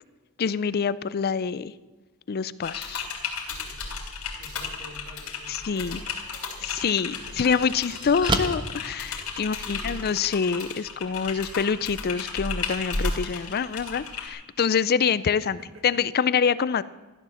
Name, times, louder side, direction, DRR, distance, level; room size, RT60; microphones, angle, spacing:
voice 1, 0.4-1.7 2.3-3.1 5.5-6.0 6.6-15.6 15.8-16.8, left 6 dB, 45° left, 17 dB, 0.4 m, -26 dB
Typing, 2.6-14.3, left 4 dB, 80° left, 3.4 m, -34 dB
voice 2, 4.4-6.7 7.1-7.8 9.4-10.1 15.5-16.0, right 1 dB, 60° right, 4 dB, 2.5 m, -49 dB
sound 1, 6.0-6.2 6.8-9.8, right 2 dB, 20° right, 1.2 m, -32 dB
15.5 x 12.0 x 7.0 m, 1.3 s
head